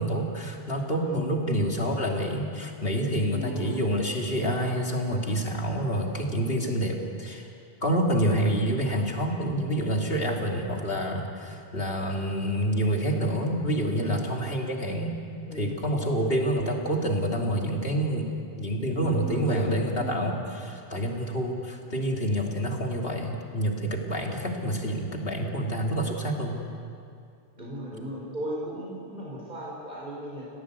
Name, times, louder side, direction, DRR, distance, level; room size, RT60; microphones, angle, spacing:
voice 1, 0.0-7.5 7.8-15.1 15.5-18.3 18.6-26.6, equal, 60° left, 0 dB, 3.2 m, -27 dB
voice 2, 3.0-3.8 14.0-14.2 15.5-15.7 19.0-20.2 27.6-30.4, right 1 dB, 45° right, -4 dB, 4.6 m, -36 dB
30.0 x 17.5 x 8.3 m, 2.4 s
omnidirectional pair, 1.1 m